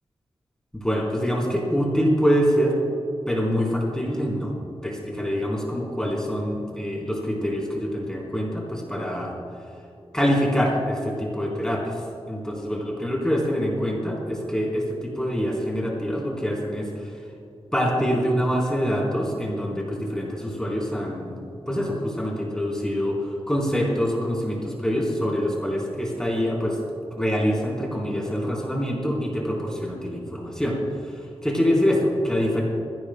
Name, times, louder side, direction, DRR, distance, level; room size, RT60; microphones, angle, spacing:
voice 1, 0.7-2.8 3.3-4.5 4.8-9.3 10.1-17.1 17.7-21.3 21.7-23.2 23.5-26.8 27.2-30.8 31.1-32.6, equal, 5° left, -3 dB, 3.8 m, -25 dB
24.5 x 16.0 x 2.2 m, 2.9 s
wide cardioid pair, 95°, 10 cm